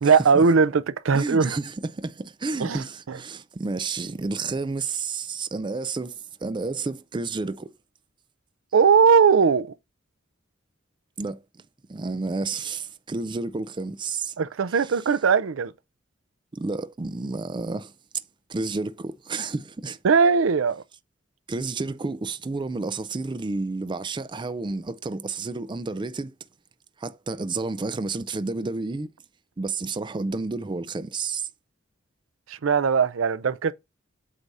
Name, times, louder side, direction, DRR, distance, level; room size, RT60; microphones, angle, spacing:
voice 1, 0.0-1.6 2.6-2.8 3.1-3.2 8.7-9.7 14.4-15.7 20.0-20.8 32.5-33.7, right 5 dB, 85° right, 0.5 m, -19 dB
voice 2, 1.1-7.7 11.2-11.4 11.9-14.3 14.7-15.0 16.5-17.9 18.5-20.0 21.5-26.3 27.0-29.1 29.6-31.5, right 3 dB, 25° right, 0.4 m, -30 dB
8.0 x 2.8 x 5.3 m
head